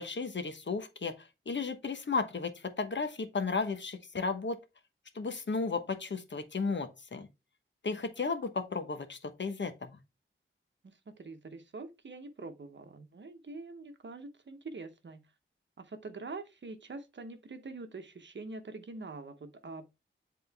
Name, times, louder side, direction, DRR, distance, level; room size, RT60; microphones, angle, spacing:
voice 1, 0.0-4.6 5.1-7.3 7.8-10.0, left 4 dB, 60° left, 1.2 m, -34 dB
voice 2, 10.8-15.3 15.8-19.9, right 3 dB, 60° right, 0.9 m, -45 dB
7.9 x 3.8 x 3.4 m
cardioid pair, 50°, 21 cm